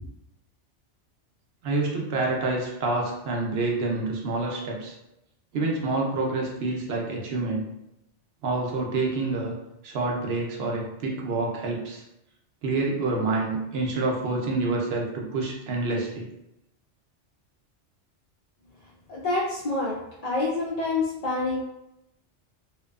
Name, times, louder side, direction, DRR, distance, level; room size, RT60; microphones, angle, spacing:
voice 1, 1.6-4.9 5.5-7.6 8.4-9.5 9.8-12.0 12.6-16.3, right 3 dB, 65° right, -1 dB, 0.7 m, -27 dB
voice 2, 19.1-20.0 20.2-21.6, left 2 dB, 65° left, -6 dB, 0.4 m, -27 dB
2.7 x 2.2 x 2.2 m, 0.87 s
omnidirectional pair, 1.2 m